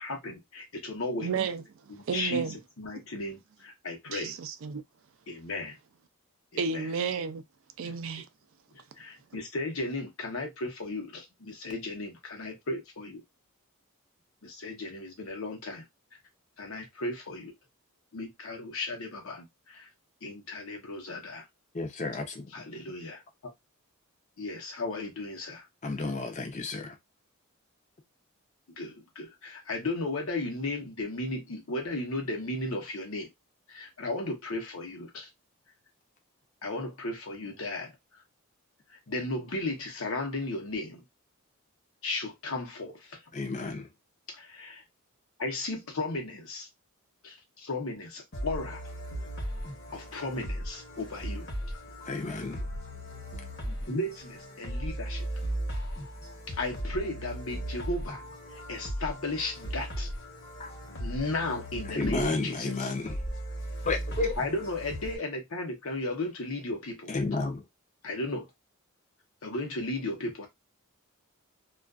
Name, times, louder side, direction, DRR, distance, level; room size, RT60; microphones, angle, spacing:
voice 1, 0.0-1.3 1.9-2.4 2.8-4.4 5.3-5.8 6.5-6.9 7.8-8.2 9.0-13.2 14.4-15.8 16.6-17.5 18.1-19.9 20.2-21.4 22.5-23.5 24.4-25.7 28.8-33.3 33.7-35.3 36.6-37.9 39.1-41.0 42.0-43.2 44.3-44.8 45.4-46.7 47.2-48.8 49.9-51.5 53.6-55.3 56.5-58.2 58.5-60.1 61.0-62.9 64.4-67.2 68.0-68.5 69.4-70.5, left 2 dB, 70° left, 0.8 m, -35 dB
voice 2, 1.2-1.6 2.1-2.5 4.1-4.8 6.6-7.4 7.8-8.3, right 5 dB, 65° right, 0.3 m, -31 dB
voice 3, 21.7-22.5 25.8-26.9 43.3-43.8 52.1-52.6 60.6-60.7 61.9-63.2 63.9-64.3 67.1-67.6, left 3 dB, 35° left, 0.5 m, -31 dB
sound 1, 48.3-65.2, equal, 50° left, 1.0 m, -37 dB
2.4 x 2.3 x 2.3 m
head